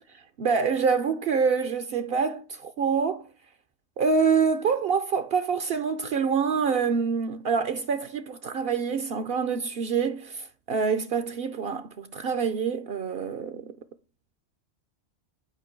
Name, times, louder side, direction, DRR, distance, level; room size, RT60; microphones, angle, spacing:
voice 1, 0.4-3.3 4.0-13.7, right 5 dB, 65° right, 0.8 m, -26 dB
8.7 x 5.4 x 4.5 m
omnidirectional pair, 1.1 m